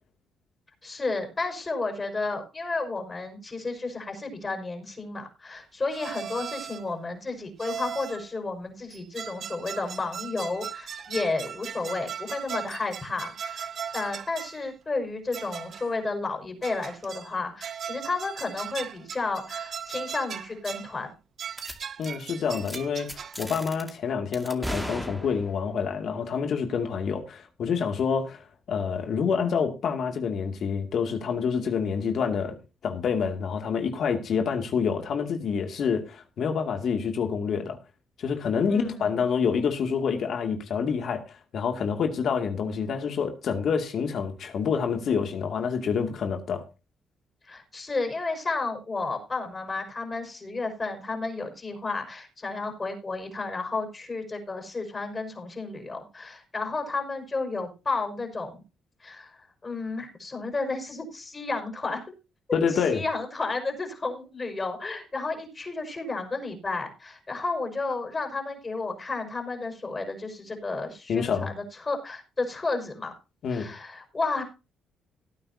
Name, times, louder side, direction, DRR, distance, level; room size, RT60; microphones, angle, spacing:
voice 1, 0.8-21.1 38.7-39.1 47.5-58.6 59.0-59.4 59.6-62.0 62.5-73.1 73.5-74.4, left 3 dB, 30° left, 5.4 m, -32 dB
sound 1, 5.9-6.9 7.6-8.3 8.9-14.7 15.3-16.0 16.6-17.3 17.6-20.9 21.4-23.5, right 8 dB, 55° right, 0.8 m, -38 dB
sound 2, 21.6-21.8 22.0-22.3 22.6-22.8 23.1-23.9 24.3-25.7, equal, 5° right, 2.2 m, -36 dB
voice 2, 22.0-32.6 32.8-37.8 38.2-46.6 62.5-63.0 71.1-71.5 73.4-73.7, left 6 dB, 65° left, 2.5 m, -27 dB
18.0 x 9.2 x 2.8 m
cardioid pair, 90°, 0 cm